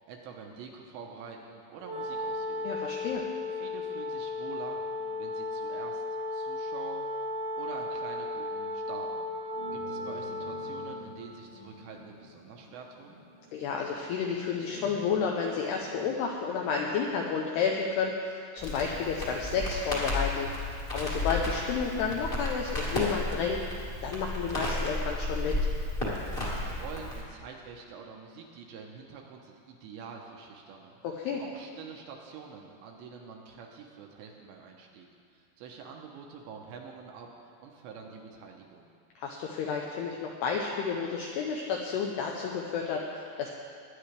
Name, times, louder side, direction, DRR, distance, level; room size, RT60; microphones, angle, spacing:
voice 1, 0.0-2.7 3.5-4.8 5.2-6.0 6.3-7.1 7.5-9.3 9.7-13.2 26.5-30.9 31.4-38.9, right 5 dB, 80° right, 1 dB, 2.8 m, -46 dB
Wind instrument woodwind instrument, 1.8-11.0, left 2 dB, 55° right, 1.1 m, -35 dB
voice 2, 2.6-3.2 13.5-20.5 20.9-25.6 31.0-31.4 39.2-43.5, left 6 dB, 90° left, 0 dB, 2.3 m, -31 dB
sound 1, 9.5-17.0, right 2 dB, 65° left, 3.7 m, -49 dB
Crackle, 18.6-27.2, left 2 dB, 30° left, 1.0 m, -33 dB
21.0 x 10.0 x 3.4 m, 2.3 s
omnidirectional pair, 5.6 m